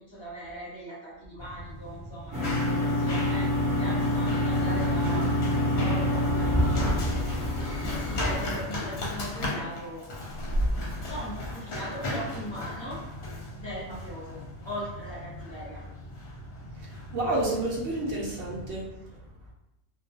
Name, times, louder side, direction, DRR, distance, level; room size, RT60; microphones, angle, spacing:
voice 1, 0.0-7.3 7.8-10.1 11.0-13.0 13.5-15.8, equal, 30° left, -7 dB, 0.5 m, -40 dB
Run, 1.4-18.7, left 1 dB, 60° left, 0.8 m, -36 dB
sound 1, 2.3-8.5, left 1 dB, 25° right, 0.4 m, -26 dB
voice 2, 16.8-18.9, right 2 dB, 60° right, -4 dB, 0.8 m, -30 dB
2.3 x 2.2 x 2.6 m, 0.90 s
omnidirectional pair, 1.4 m